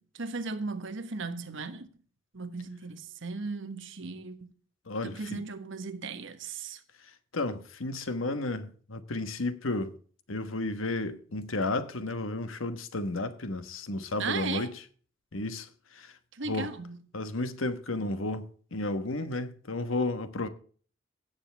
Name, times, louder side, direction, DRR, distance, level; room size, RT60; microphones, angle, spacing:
voice 1, 0.0-1.9 2.3-4.5 5.0-6.8 14.2-14.7 16.3-17.0, right 4 dB, 70° right, 1.3 m, -36 dB
voice 2, 4.9-5.4 7.3-10.0 10.3-14.7 15.3-15.7 15.9-16.1 16.5-16.7 17.1-20.5, left 2 dB, 80° left, 1.2 m, -32 dB
16.5 x 7.1 x 3.4 m
head